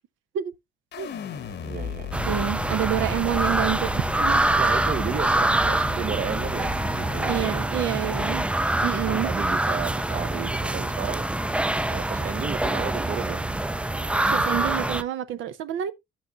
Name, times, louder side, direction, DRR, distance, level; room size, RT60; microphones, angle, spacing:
sound 1, 0.9-7.6, left 8 dB, 60° left, 1.0 m, -36 dB
voice 1, 1.6-2.3 4.6-7.7 8.0-8.4 9.1-11.3 11.9-13.4 14.6-15.0, right 8 dB, 45° right, 0.7 m, -33 dB
sound 2, 2.1-15.0, right 2 dB, 5° right, 0.4 m, -25 dB
voice 2, 2.2-4.4 7.3-8.4 8.8-9.3 14.2-15.9, right 11 dB, 80° right, 0.6 m, -28 dB
11.5 x 6.2 x 2.5 m
cardioid pair, 90°, 20 cm